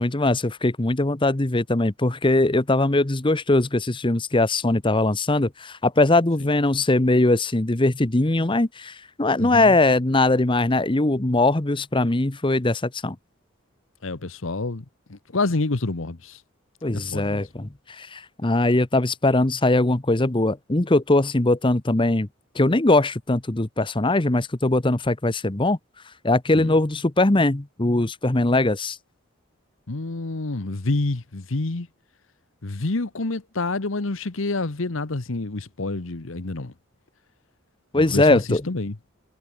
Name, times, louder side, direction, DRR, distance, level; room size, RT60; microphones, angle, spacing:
voice 1, 0.0-13.2 16.8-22.3 22.5-25.8 26.2-29.0 37.9-38.6, left 2 dB, 25° left, 1.0 m, -21 dB
voice 2, 9.4-9.8 14.0-14.8 15.1-16.4 16.9-17.5 26.6-26.7 29.9-31.9 32.6-36.7 37.9-39.0, left 2 dB, 65° left, 1.1 m, -28 dB
head